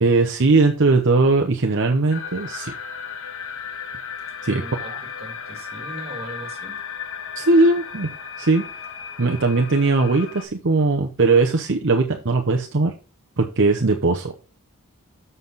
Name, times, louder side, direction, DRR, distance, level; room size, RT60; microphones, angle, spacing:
voice 1, 0.0-2.7 4.4-5.0 7.4-8.1 8.4-8.7 9.2-12.9 13.4-14.3, right 3 dB, 60° right, 0.8 m, -19 dB
sound 1, 2.1-10.4, left 7 dB, 60° left, 1.4 m, -35 dB
voice 2, 4.4-6.8, right 1 dB, 30° right, 2.8 m, -39 dB
7.5 x 5.5 x 4.1 m
head